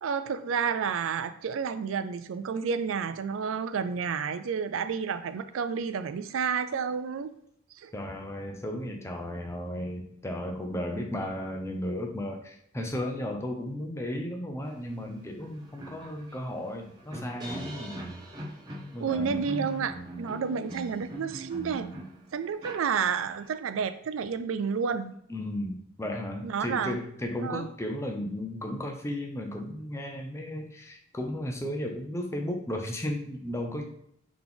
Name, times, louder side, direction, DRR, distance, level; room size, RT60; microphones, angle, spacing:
voice 1, 0.0-7.3 7.8-7.9 19.0-21.9 22.3-25.1 26.4-26.9 27.4-27.7, right 6 dB, 80° right, 11 dB, 0.4 m, -30 dB
voice 2, 7.9-18.0 18.9-19.5 25.3-33.8, left 1 dB, 15° left, 2 dB, 0.5 m, -34 dB
sound 1, 15.0-15.1 15.4-23.5, right 1 dB, 20° right, 0.8 m, -41 dB
4.0 x 2.9 x 3.5 m, 0.71 s
head